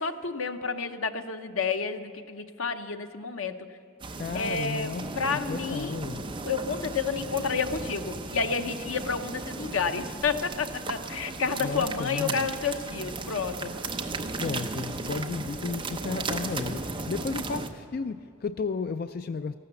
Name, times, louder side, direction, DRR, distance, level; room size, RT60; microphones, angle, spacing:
voice 1, 0.0-3.6 4.3-5.9 6.4-13.7, left 5 dB, 85° left, 7 dB, 0.9 m, -30 dB
sound 1, 4.0-17.7, right 3 dB, 25° right, 0.7 m, -36 dB
voice 2, 4.2-6.3 11.6-12.5 14.4-19.6, left 4 dB, 45° left, 10 dB, 0.3 m, -33 dB
14.5 x 12.0 x 7.0 m, 2.4 s
head